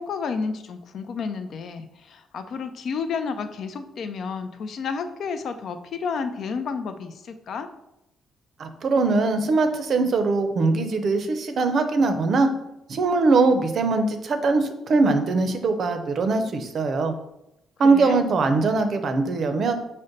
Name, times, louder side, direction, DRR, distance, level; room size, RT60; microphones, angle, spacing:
voice 1, 0.0-7.7 17.8-18.2, left 5 dB, 65° left, 8 dB, 0.4 m, -31 dB
voice 2, 8.6-12.5 12.9-17.1 17.8-19.7, right 3 dB, 55° right, 7 dB, 0.5 m, -21 dB
5.1 x 2.1 x 3.9 m, 0.87 s
cardioid pair, 90°, 0 cm